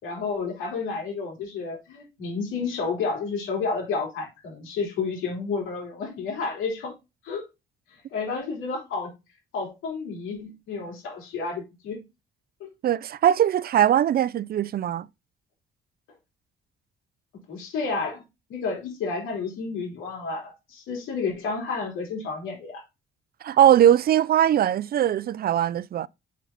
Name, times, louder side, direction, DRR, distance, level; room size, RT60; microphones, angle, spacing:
voice 1, 0.0-6.9 7.2-7.4 8.1-9.1 9.5-12.0 12.6-12.7 17.5-18.2 18.5-22.8, left 4 dB, 90° left, 3.4 m, -31 dB
voice 2, 12.8-15.1 23.4-26.1, right 10 dB, 50° right, 0.4 m, -20 dB
6.1 x 5.8 x 3.9 m
cardioid pair, 90°, 20 cm